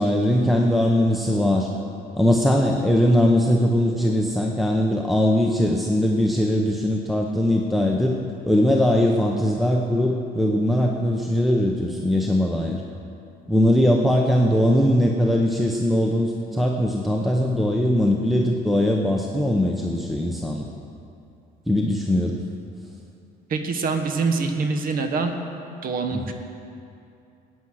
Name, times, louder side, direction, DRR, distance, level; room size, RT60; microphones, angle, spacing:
voice 1, 0.0-1.7 2.2-8.2 8.4-12.8 13.5-20.7 21.7-22.4 26.1-26.2, left 1 dB, ahead, 0 dB, 0.8 m, -20 dB
voice 2, 23.5-25.3 25.8-26.3, right 4 dB, 60° right, 6 dB, 1.3 m, -24 dB
14.5 x 9.5 x 6.3 m, 2.6 s
cardioid pair, 110°, 17 cm